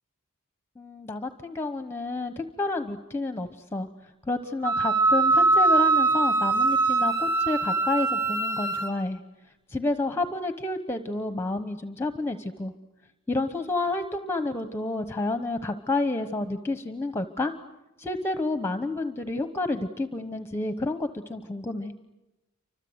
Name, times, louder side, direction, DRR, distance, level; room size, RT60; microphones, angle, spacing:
voice 1, 0.8-3.9 4.3-9.2 9.7-12.7 13.3-17.5 18.0-21.9, left 2 dB, 10° left, 8 dB, 1.0 m, -30 dB
Wind instrument woodwind instrument, 4.6-8.9, right 3 dB, 20° right, 4.1 m, -22 dB
29.0 x 25.5 x 8.0 m, 1.0 s
head